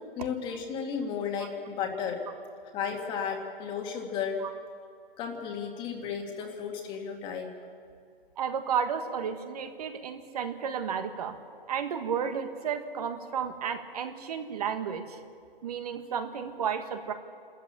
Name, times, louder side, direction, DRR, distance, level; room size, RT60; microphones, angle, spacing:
voice 1, 0.0-2.2 2.7-4.4 5.2-7.5, left 6 dB, 15° left, 3 dB, 1.9 m, -34 dB
voice 2, 8.4-11.4 11.7-15.2 15.6-17.1, right 7 dB, 40° right, 7 dB, 1.6 m, -32 dB
28.0 x 14.0 x 8.7 m, 2.2 s
hypercardioid pair, 160°, 29 cm